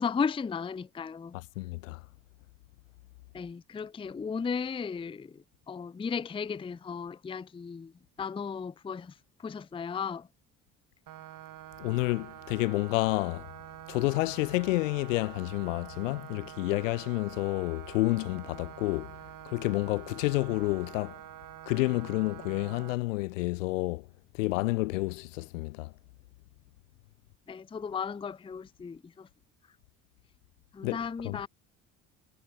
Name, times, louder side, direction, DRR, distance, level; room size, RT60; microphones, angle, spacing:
voice 1, 0.0-1.3 3.3-5.3 5.7-7.9 8.2-9.1 9.4-10.2 27.5-29.3 30.7-31.5, left 6 dB, 15° left, 0.5 m, -35 dB
voice 2, 1.3-2.1 11.8-13.5 13.9-19.2 19.5-21.2 21.7-24.1 24.3-25.9 30.8-31.5, left 22 dB, 90° left, 1.8 m, -30 dB
sound 1, 11.1-23.0, right 12 dB, 60° right, 2.4 m, -47 dB
hypercardioid pair, 60°, 38 cm